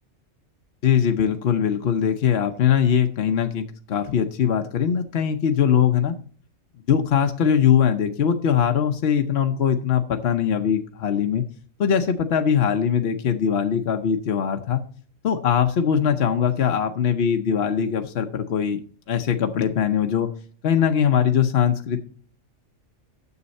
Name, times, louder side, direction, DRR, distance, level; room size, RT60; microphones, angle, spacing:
voice 1, 0.8-6.2 6.9-11.5 11.8-14.8 15.2-18.8 19.1-20.3 20.6-22.0, left 8 dB, 55° left, 5 dB, 0.9 m, -21 dB
9.7 x 7.3 x 4.1 m, 0.44 s
omnidirectional pair, 1.4 m